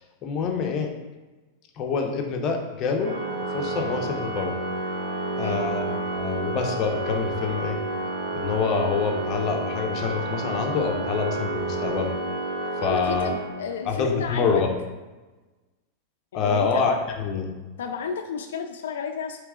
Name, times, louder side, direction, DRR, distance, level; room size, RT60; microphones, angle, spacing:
voice 1, 0.2-0.9 1.8-3.2 3.5-4.6 5.4-7.8 8.3-12.1 12.8-13.3 13.9-14.7 16.3-17.5, left 5 dB, 35° left, 2 dB, 0.7 m, -26 dB
Organ, 3.0-13.9, right 2 dB, 90° right, 1.1 m, -30 dB
voice 2, 12.8-14.6 16.3-16.8 17.8-19.4, left 6 dB, 90° left, 6 dB, 0.3 m, -32 dB
4.6 x 3.1 x 3.6 m, 1.2 s
supercardioid pair, 140°, 0 cm